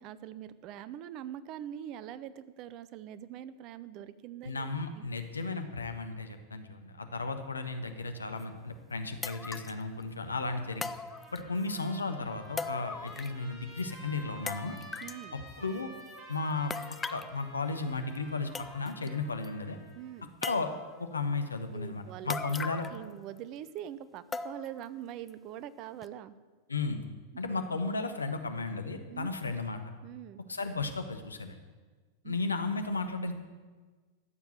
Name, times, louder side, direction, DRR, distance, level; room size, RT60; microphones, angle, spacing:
voice 1, 0.0-4.7 4.9-5.0 15.0-15.4 20.0-20.3 21.7-22.4 22.9-26.4 29.1-29.3 30.0-30.4 32.2-32.4, right 11 dB, 40° right, 16 dB, 0.6 m, -43 dB
voice 2, 4.4-10.9 11.3-14.8 15.3-15.9 16.3-16.7 17.1-19.8 20.4-20.7 21.0-22.9 26.7-27.0 27.4-29.8 30.5-31.6 32.2-33.3, left 3 dB, 75° left, 7 dB, 1.2 m, -34 dB
sound 1, 8.4-8.5 9.2-9.8 10.8-11.7 12.6-13.5 13.8-13.9 14.5-15.2 16.7-17.4 18.2-18.3 18.5-19.1 19.4-19.5 20.4-21.0 22.3-23.1 23.4-23.5 24.3-24.8 25.3-25.4 26.0-26.1, left 4 dB, 15° left, 0.5 m, -39 dB
Trumpet, 11.1-20.2, right 1 dB, 20° right, 4.7 m, -52 dB
14.0 x 7.2 x 9.0 m, 1.4 s
figure-of-eight pair, 90°, 0 cm